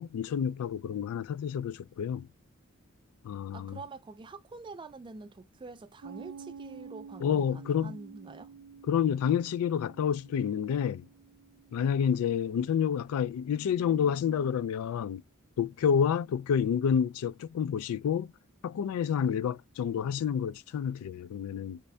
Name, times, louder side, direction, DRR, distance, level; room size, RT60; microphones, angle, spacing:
voice 1, 0.0-2.3 3.2-3.8 7.2-8.0 8.9-11.0 11.7-15.2 15.6-18.3 18.6-21.8, left 8 dB, 90° left, 0.3 m, -29 dB
voice 2, 3.5-8.5, right 3 dB, 20° right, 0.3 m, -46 dB
Piano, 6.0-13.2, right 6 dB, 80° right, 0.5 m, -50 dB
3.2 x 2.6 x 3.3 m
head